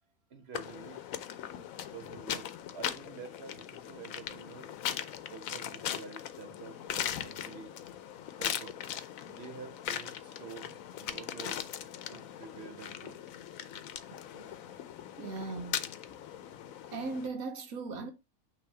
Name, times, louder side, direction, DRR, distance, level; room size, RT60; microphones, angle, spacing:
voice 1, 0.3-1.0 1.9-4.7 5.3-7.8 8.4-8.8 9.2-11.6 12.1-13.3 14.1-14.5 15.3-15.6, right 6 dB, 55° right, 0.8 m, -49 dB
sound 1, 0.5-17.3, left 10 dB, 75° left, 1.0 m, -40 dB
voice 2, 15.2-15.9 16.9-18.1, right 3 dB, 80° right, 1.5 m, -38 dB
6.1 x 3.0 x 5.5 m
omnidirectional pair, 1.5 m